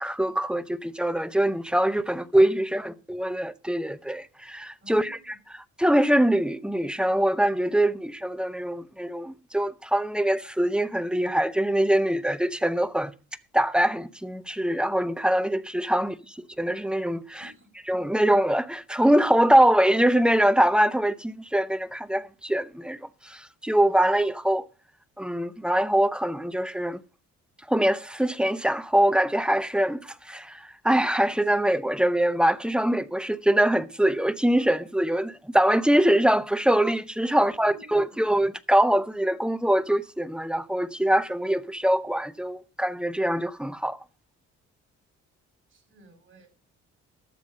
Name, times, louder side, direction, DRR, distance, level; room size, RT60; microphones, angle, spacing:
voice 1, 0.0-5.2 5.8-13.1 13.5-17.5 17.9-24.7 25.2-27.0 27.7-44.0, right 1 dB, 5° right, 0.7 m, -23 dB
voice 2, 2.5-2.9 4.8-5.4 15.9-16.2 17.3-17.7 37.3-37.4 37.7-38.0 38.3-38.4 45.7-46.5, right 1 dB, 40° right, 5.7 m, -53 dB
12.5 x 7.3 x 6.4 m
cardioid pair, 90°, 30 cm